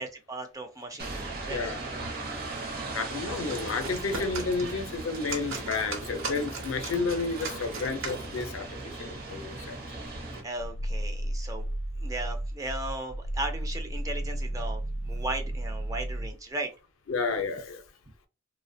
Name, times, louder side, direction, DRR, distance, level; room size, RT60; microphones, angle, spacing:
voice 1, 0.0-1.6 2.6-2.8 4.6-4.7 10.4-11.7 12.0-16.7, right 2 dB, 15° right, 0.3 m, -37 dB
sound 1, 1.0-10.4, right 2 dB, 45° right, 0.7 m, -38 dB
voice 2, 1.5-1.8 2.9-9.8 17.1-17.8, left 4 dB, 75° left, 0.5 m, -31 dB
sound 2, 3.3-8.6, right 3 dB, 70° right, 0.8 m, -39 dB
Growling, 10.1-16.4, right 1 dB, 85° right, 0.5 m, -33 dB
2.7 x 2.1 x 2.6 m
head